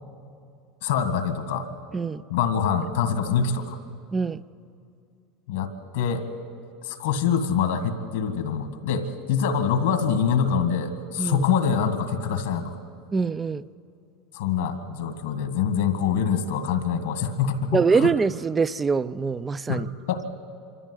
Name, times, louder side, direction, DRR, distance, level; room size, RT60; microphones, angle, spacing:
voice 1, 0.8-1.7 2.3-3.8 5.5-6.3 6.8-12.8 14.3-18.1 19.7-20.3, left 7 dB, 80° left, 2.0 m, -25 dB
voice 2, 4.1-4.4 11.2-11.4 13.1-13.7 17.7-19.9, right 5 dB, 20° right, 0.5 m, -24 dB
25.0 x 14.0 x 9.9 m
hypercardioid pair, 100°, 0 cm